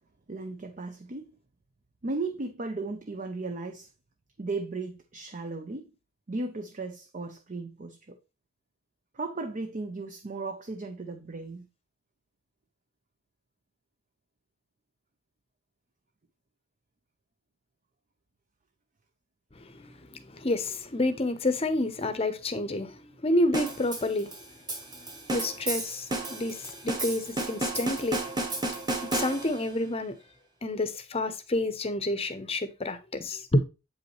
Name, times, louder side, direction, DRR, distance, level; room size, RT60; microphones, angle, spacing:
voice 1, 0.3-1.3 2.0-3.9 4.4-5.9 6.3-8.2 9.1-11.7, right 3 dB, 35° right, 0.6 m, -36 dB
voice 2, 19.6-24.4 25.3-28.3 29.1-30.2 30.6-33.6, left 1 dB, 30° left, 0.7 m, -29 dB
sound 1, 23.5-29.7, right 2 dB, 20° right, 1.3 m, -33 dB
8.1 x 5.4 x 3.1 m
head